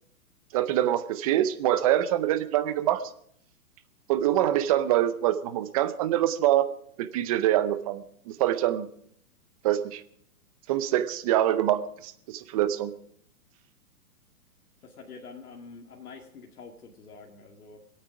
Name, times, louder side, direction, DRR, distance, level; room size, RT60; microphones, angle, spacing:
voice 1, 0.5-3.0 4.1-6.7 7.0-8.9 9.6-10.0 10.7-12.9, right 12 dB, 25° right, 13 dB, 0.6 m, -25 dB
voice 2, 14.8-17.8, left 4 dB, 75° left, 1 dB, 2.3 m, -46 dB
23.5 x 8.9 x 4.9 m, 0.67 s
hypercardioid pair, 140°, 45 cm